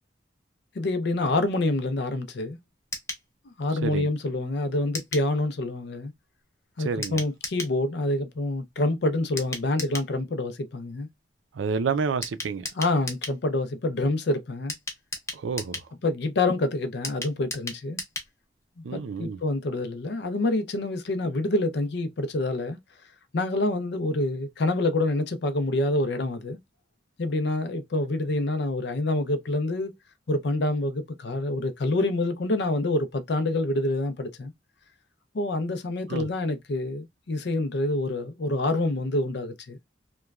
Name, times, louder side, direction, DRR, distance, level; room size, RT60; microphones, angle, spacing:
voice 1, 0.7-2.6 3.6-6.1 6.8-11.1 12.8-14.7 16.0-18.0 18.9-22.8 23.3-26.6 27.2-29.9 30.3-34.5 35.3-39.8, left 2 dB, 65° left, 0.5 m, -27 dB
sound 1, 2.9-3.3 4.9-5.3 7.0-7.8 9.4-10.1 12.2-13.4 14.7-15.9 17.0-18.3 18.6-18.7 19.0-19.1, left 2 dB, 15° left, 0.7 m, -35 dB
voice 2, 6.8-7.2 11.5-12.7 15.3-15.8 18.8-19.4 36.1-36.3, right 5 dB, 85° right, 0.4 m, -29 dB
3.0 x 2.2 x 2.3 m
head